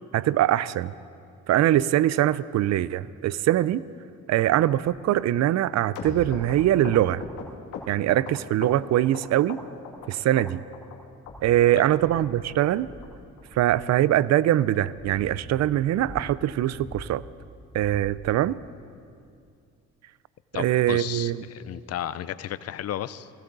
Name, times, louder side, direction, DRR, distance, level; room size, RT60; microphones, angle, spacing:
voice 1, 0.1-0.9 1.5-3.8 4.3-7.2 7.9-9.6 10.1-10.6 11.4-12.9 13.5-17.2 17.7-18.6 20.5-21.4, right 13 dB, 60° right, 19 dB, 0.5 m, -22 dB
sound 1, 5.0-5.1 5.7-5.8 6.3-6.5 7.0-7.5 8.9-9.0 9.7-10.4 10.9-13.8 14.5-17.3 17.6-18.6 19.4-19.5, left 1 dB, 10° left, 4.4 m, -45 dB
sound 2, 5.9-9.2 9.5-10.1 10.4-11.0 11.3-11.4 11.6-11.8 12.1-12.2 12.5-12.7 13.0-13.1 13.4-13.6 13.9-14.0 14.3-14.5 14.8-14.9 15.1-15.3 15.7-15.8, left 5 dB, 90° left, 2.0 m, -38 dB
voice 2, 20.5-23.3, left 11 dB, 55° left, 16 dB, 0.6 m, -33 dB
18.5 x 16.5 x 3.9 m, 2.4 s
cardioid pair, 90°, 30 cm